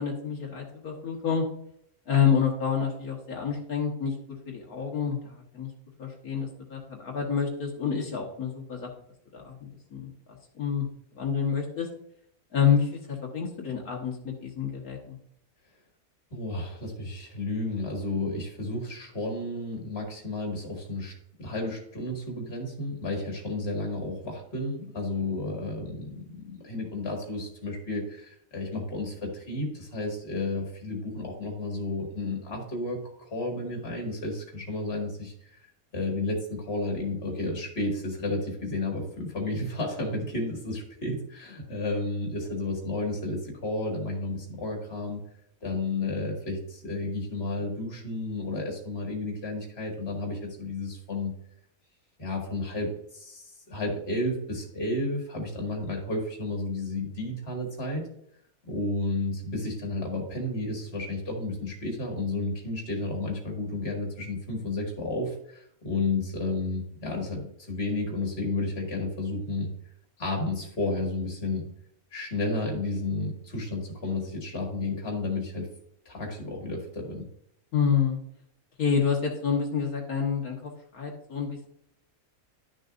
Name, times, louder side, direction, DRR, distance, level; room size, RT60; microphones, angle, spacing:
voice 1, 0.0-1.4 2.1-4.2 4.5-5.7 6.0-8.9 9.3-10.1 10.6-10.9 11.2-11.9 12.5-15.2 77.7-78.2 78.8-81.7, left 7 dB, 80° left, -1 dB, 1.9 m, -28 dB
voice 2, 16.3-35.6 35.9-45.2 45.6-51.3 52.2-58.1 58.6-69.7 70.2-71.6 72.1-75.7 76.1-77.3, left 2 dB, 45° left, 0 dB, 2.3 m, -32 dB
12.0 x 6.4 x 2.6 m, 0.70 s
omnidirectional pair, 1.5 m